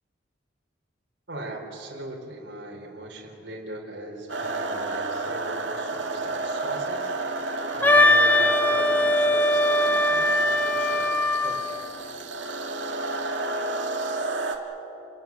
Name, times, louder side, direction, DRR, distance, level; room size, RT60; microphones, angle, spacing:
voice 1, 1.3-7.5 7.7-11.8, right 1 dB, 65° right, -1 dB, 3.9 m, -39 dB
sound 1, 4.3-14.6, right 3 dB, 80° right, 2.1 m, -30 dB
Wind instrument woodwind instrument, 7.8-11.7, left 1 dB, 10° left, 1.1 m, -21 dB
29.5 x 19.5 x 7.3 m, 2.9 s
head